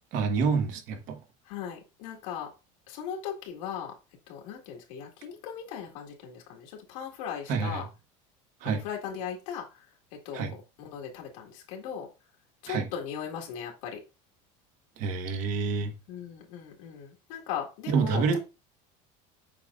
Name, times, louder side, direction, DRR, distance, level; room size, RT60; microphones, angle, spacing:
voice 1, 0.1-1.2 7.5-7.8 8.6-8.8 10.3-10.5 12.7-12.9 15.0-15.9 17.9-18.4, right 5 dB, 50° right, 1.4 m, -27 dB
voice 2, 1.5-2.5 2.9-3.9 4.3-7.9 8.6-9.9 10.1-12.1 12.6-14.0 16.1-18.4, left 8 dB, 80° left, 1.9 m, -38 dB
7.5 x 5.1 x 2.4 m
cardioid pair, 150°, 17 cm